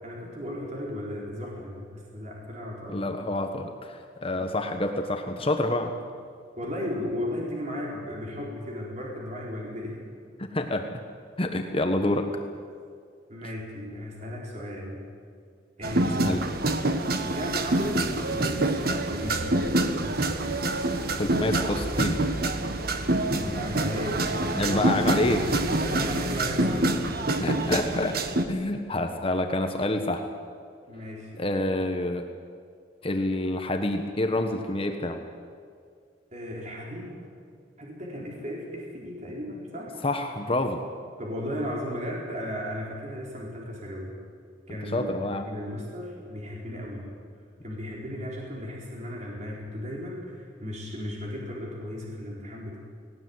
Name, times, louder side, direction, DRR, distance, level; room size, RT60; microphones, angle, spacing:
voice 1, 0.0-3.1 4.3-4.4 6.6-10.0 13.3-15.0 15.8-16.4 17.2-20.5 23.4-25.4 25.8-27.0 30.9-31.4 36.3-37.3 37.8-40.0 41.2-44.2 44.7-47.1 47.6-52.8, left 1 dB, 40° right, -2 dB, 4.2 m, -35 dB
voice 2, 2.9-5.9 10.4-11.0 11.4-12.3 16.2-16.4 21.2-22.2 24.5-25.4 27.4-28.2 28.5-30.2 31.4-32.2 33.0-35.2 40.0-40.8 44.9-45.4, left 1 dB, 30° left, 5 dB, 1.3 m, -27 dB
sound 1, 15.8-28.5, right 2 dB, 55° right, 1.5 m, -26 dB
18.5 x 18.5 x 9.5 m, 2.2 s
head